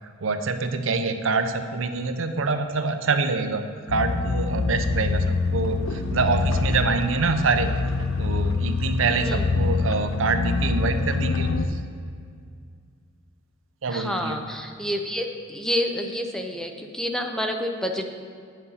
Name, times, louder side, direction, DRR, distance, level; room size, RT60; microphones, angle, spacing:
voice 1, 0.2-7.7 8.2-11.8 13.8-14.4, right 4 dB, 75° right, 8 dB, 0.6 m, -25 dB
sound 1, 3.9-11.7, left 4 dB, 85° left, 0.6 m, -25 dB
voice 2, 13.9-18.1, equal, 5° left, 3 dB, 0.6 m, -28 dB
10.0 x 5.4 x 5.7 m, 2.2 s
head